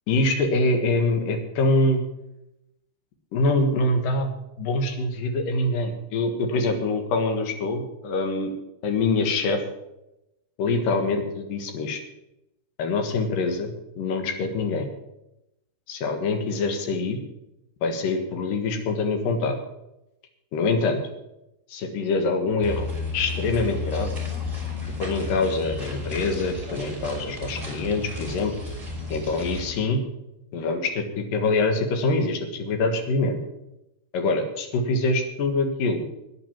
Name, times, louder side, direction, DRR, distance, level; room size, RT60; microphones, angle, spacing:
voice 1, 0.1-2.0 3.3-8.5 8.8-9.6 10.6-12.0 12.8-14.9 15.9-17.2 17.8-19.6 20.5-21.0 21.7-22.9 23.1-24.1 25.0-28.5 29.1-30.0 30.5-33.4 34.1-36.1, left 3 dB, 65° left, 5 dB, 3.1 m, -24 dB
sound 1, 22.6-29.7, left 3 dB, 10° right, 4.0 m, -32 dB
11.0 x 9.8 x 7.5 m, 0.90 s
omnidirectional pair, 4.5 m